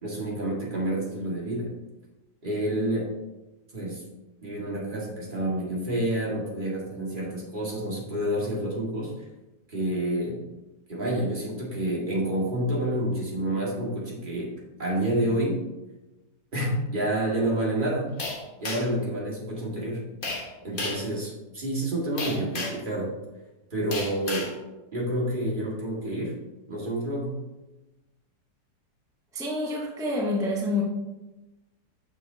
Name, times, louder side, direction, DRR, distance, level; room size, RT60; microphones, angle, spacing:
voice 1, 0.0-1.7 2.4-3.1 3.7-4.0 4.4-9.1 9.7-10.4 10.9-15.6 16.5-18.1 18.6-20.0 20.6-23.1 23.7-24.5 24.9-26.3 26.7-27.4, right 1 dB, 30° right, -4 dB, 2.0 m, -28 dB
sound 1, 18.2-19.0 20.2-20.5 20.8-21.1 22.2-22.9 23.9-24.5, left 2 dB, 35° left, 1.3 m, -32 dB
voice 2, 29.3-30.8, left 2 dB, 5° right, -2 dB, 0.7 m, -27 dB
9.3 x 6.4 x 2.8 m, 1.1 s
omnidirectional pair, 1.8 m